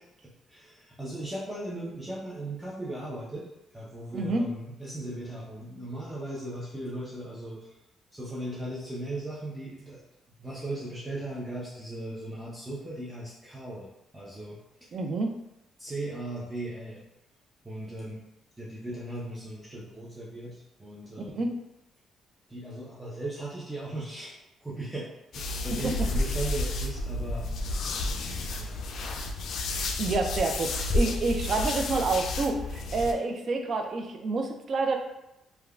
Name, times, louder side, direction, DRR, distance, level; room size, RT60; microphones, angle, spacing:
voice 1, 0.2-7.7 8.1-10.0 10.4-13.9 14.1-14.6 15.8-17.0 17.6-18.2 18.6-21.5 22.5-27.5 28.6-28.8, right 1 dB, 10° right, -6 dB, 0.6 m, -38 dB
voice 2, 4.1-4.5 14.9-15.3 21.3-21.6 25.8-25.9 30.0-35.0, right 3 dB, 50° right, 4 dB, 0.4 m, -28 dB
sound 1, 25.3-33.1, left 2 dB, 70° left, 0.3 m, -31 dB
3.1 x 2.2 x 2.4 m, 0.89 s
cardioid pair, 90°, 0 cm